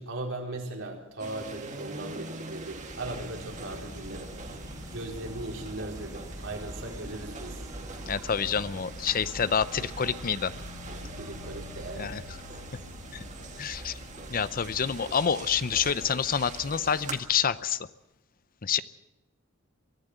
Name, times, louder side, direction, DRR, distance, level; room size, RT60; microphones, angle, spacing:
voice 1, 0.0-4.3 4.9-7.7 11.1-12.1, right 2 dB, 65° right, 1 dB, 4.5 m, -38 dB
sound 1, 1.2-17.1, right 3 dB, 35° right, 2.1 m, -44 dB
Insect, 2.7-17.8, right 1 dB, 15° right, 1.3 m, -45 dB
sound 2, 3.0-15.0, left 3 dB, 90° left, 2.6 m, -48 dB
voice 2, 8.1-10.5 12.0-12.2 13.1-13.2 13.6-14.0 14.3-17.9 18.6-18.8, left 7 dB, 45° left, 15 dB, 0.7 m, -28 dB
23.5 x 14.5 x 7.9 m, 0.93 s
head